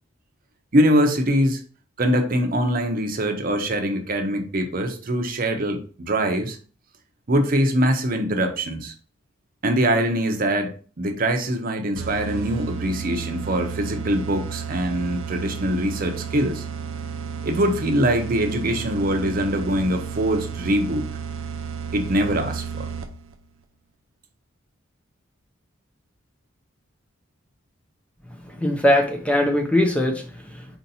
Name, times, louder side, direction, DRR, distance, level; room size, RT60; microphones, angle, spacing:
voice 1, 0.7-1.6 2.0-6.6 7.3-8.9 9.6-16.6 17.4-21.1 21.9-22.9, equal, 45° right, 5 dB, 0.7 m, -23 dB
sound 1, 12.0-23.3, right 6 dB, 80° right, 0.6 m, -32 dB
voice 2, 28.3-30.8, left 1 dB, 5° left, 3 dB, 0.5 m, -22 dB
4.3 x 2.8 x 4.0 m, 0.40 s
head